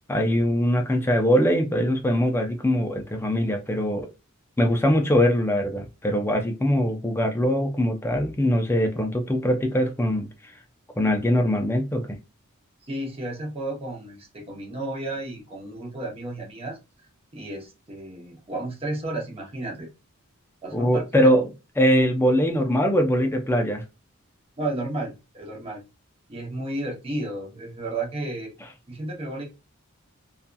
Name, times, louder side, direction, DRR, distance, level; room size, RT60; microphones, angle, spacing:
voice 1, 0.1-4.1 4.6-10.3 11.0-12.2 20.7-21.5 21.8-23.8, equal, 10° left, 0.4 m, -22 dB
voice 2, 12.9-16.8 17.3-19.9 20.6-21.3 24.6-25.8 26.3-28.5 28.9-29.4, right 2 dB, 25° right, 0.8 m, -32 dB
2.7 x 2.4 x 2.2 m
head